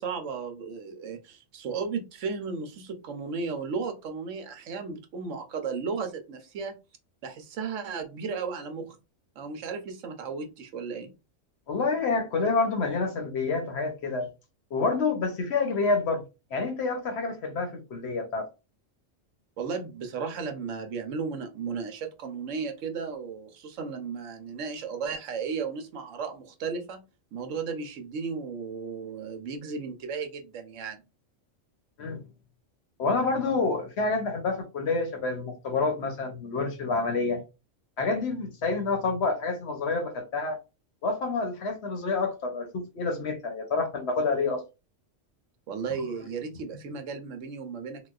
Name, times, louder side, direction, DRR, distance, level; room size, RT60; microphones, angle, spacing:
voice 1, 0.0-6.7 7.2-9.0 9.4-11.1 19.6-27.0 27.3-31.0 45.7-48.1, right 5 dB, 75° right, 1.0 m, -34 dB
voice 2, 11.7-14.3 14.7-16.2 16.5-18.5 32.0-32.2 33.0-37.4 38.0-40.6 41.0-44.6, left 3 dB, 60° left, 0.9 m, -28 dB
3.9 x 2.3 x 2.3 m
omnidirectional pair, 1.3 m